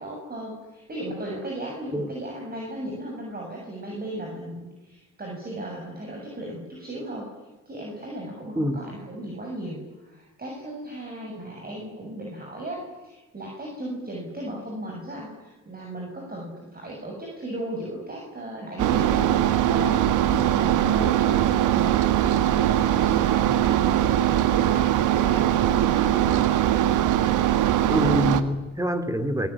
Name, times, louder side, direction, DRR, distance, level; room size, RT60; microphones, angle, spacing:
voice 1, 0.0-7.3 7.7-21.9 22.5-24.9 25.3-26.5, right 1 dB, 30° right, -1 dB, 7.6 m, -36 dB
sound 1, 18.8-28.4, right 12 dB, 90° right, 1.6 m, -21 dB
voice 2, 27.9-29.5, equal, 10° right, 9 dB, 3.1 m, -25 dB
27.5 x 20.0 x 10.0 m, 1.1 s
cardioid pair, 90°, 30 cm